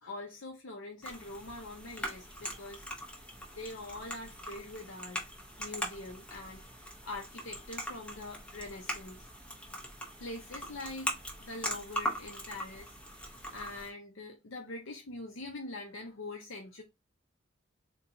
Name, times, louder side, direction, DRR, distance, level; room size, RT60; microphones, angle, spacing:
voice 1, 0.0-3.2 3.5-5.2 5.6-6.6 7.0-9.3 10.2-12.9 13.5-16.8, left 2 dB, 80° left, 0.7 m, -44 dB
sound 1, 1.0-13.9, equal, 5° left, 0.7 m, -41 dB
3.9 x 2.3 x 2.7 m
head